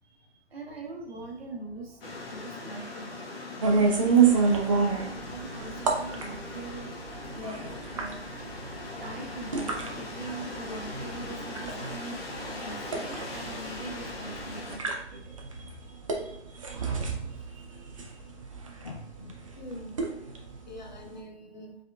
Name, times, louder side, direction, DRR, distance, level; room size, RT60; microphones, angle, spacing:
voice 1, 0.0-3.3 3.9-7.0 7.2-17.0 17.3-18.9, right 2 dB, 60° right, 0 dB, 1.3 m, -44 dB
sound 1, 2.0-14.8, left 2 dB, 55° left, 1.4 m, -40 dB
sound 2, 3.6-21.2, right 5 dB, 30° right, 0.5 m, -29 dB
voice 2, 18.8-20.0 20.7-21.8, left 2 dB, 40° left, 3 dB, 0.5 m, -43 dB
4.9 x 3.7 x 2.3 m, 0.75 s
figure-of-eight pair, 145°, 35 cm